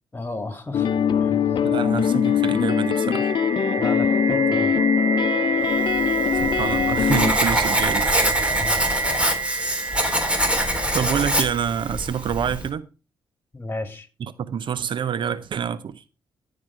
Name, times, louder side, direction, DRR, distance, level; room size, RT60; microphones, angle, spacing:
voice 1, 0.1-0.9 1.2-1.5 3.8-4.7 8.5-8.9 13.5-14.1, left 2 dB, 20° left, 2.5 m, -33 dB
sound 1, 0.7-7.3, left 8 dB, 55° left, 0.7 m, -22 dB
voice 2, 1.6-3.3 6.4-8.2 8.8-9.1 10.9-12.9 14.2-16.0, right 8 dB, 60° right, 0.7 m, -27 dB
sound 2, 2.0-11.9, right 5 dB, 40° right, 1.3 m, -28 dB
Writing, 6.0-12.7, equal, 10° right, 3.3 m, -24 dB
14.0 x 4.9 x 4.7 m
hypercardioid pair, 45°, 9 cm